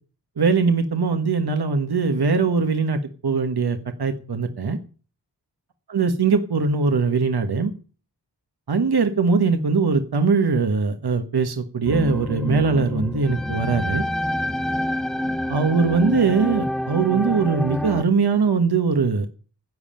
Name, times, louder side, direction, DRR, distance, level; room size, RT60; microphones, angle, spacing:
voice 1, 0.4-4.8 5.9-7.7 8.7-14.0 15.5-19.3, right 4 dB, 65° right, 7 dB, 1.3 m, -21 dB
sound 1, 11.9-18.0, left 1 dB, ahead, 0.7 m, -27 dB
11.0 x 7.2 x 8.7 m, 0.38 s
wide cardioid pair, 60°, 42 cm